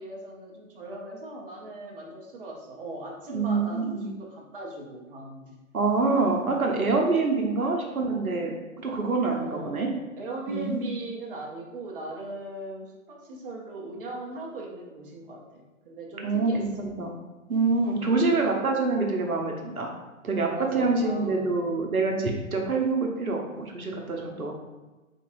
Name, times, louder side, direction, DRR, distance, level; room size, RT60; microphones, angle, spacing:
voice 1, 0.0-5.6 9.3-9.8 10.2-16.7 17.8-18.4 20.5-21.5, right 2 dB, 40° right, -1 dB, 0.8 m, -38 dB
voice 2, 3.3-4.1 5.7-8.5 8.8-9.9 10.5-10.9 16.2-17.1 17.5-19.9 20.2-24.5, right 3 dB, 80° right, 1 dB, 0.8 m, -26 dB
4.0 x 3.6 x 2.6 m, 1.2 s
figure-of-eight pair, 130°, 42 cm